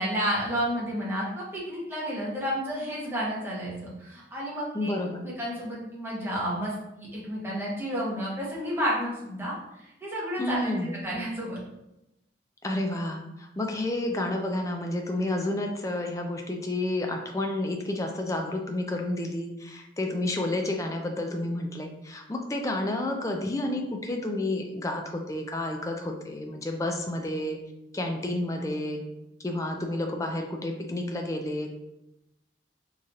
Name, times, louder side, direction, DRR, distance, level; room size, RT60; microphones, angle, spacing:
voice 1, 0.0-4.9 5.2-11.6, equal, 10° right, -6 dB, 1.0 m, -31 dB
voice 2, 4.7-5.2 10.4-10.9 12.6-27.6 27.9-29.0 29.4-31.7, left 1 dB, 15° left, 3 dB, 0.4 m, -30 dB
4.2 x 3.2 x 2.4 m, 0.90 s
head